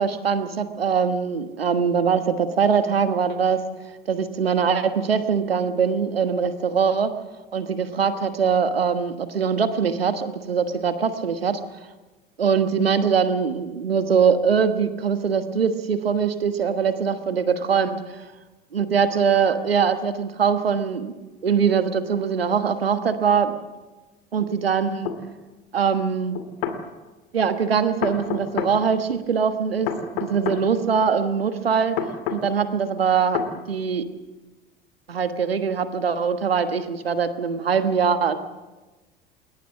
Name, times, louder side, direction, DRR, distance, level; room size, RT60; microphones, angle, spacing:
voice 1, 0.0-3.6 4.1-7.1 7.5-11.6 12.4-18.2 18.7-21.2 21.4-23.5 24.3-25.1 25.7-26.3 27.3-32.0 32.3-34.0 35.1-38.4, right 6 dB, 90° right, 10 dB, 1.4 m, -22 dB
sound 1, 25.1-25.2 26.3-26.8 28.0-28.8 29.9-30.6 32.0-32.4 33.3-33.5, left 8 dB, 70° left, 2.5 m, -27 dB
21.5 x 20.0 x 7.2 m, 1.2 s
hypercardioid pair, 70°, 29 cm